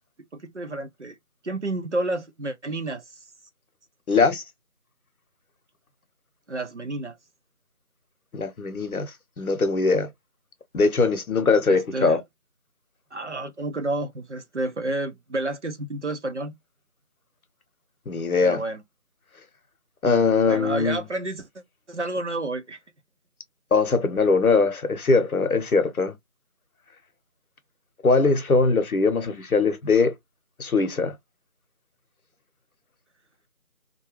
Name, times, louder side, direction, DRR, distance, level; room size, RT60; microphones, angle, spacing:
voice 1, 0.3-1.2 1.4-3.0 6.5-7.2 11.7-12.2 13.1-16.5 18.4-18.8 20.4-21.5 21.9-22.8, right 2 dB, 55° right, 0.6 m, -30 dB
voice 2, 4.1-4.4 8.3-10.1 10.7-12.2 18.1-18.6 20.0-21.0 23.7-26.1 28.0-30.2 30.6-31.2, left 4 dB, 90° left, 0.8 m, -21 dB
2.3 x 2.2 x 3.0 m
figure-of-eight pair, 170°, 42 cm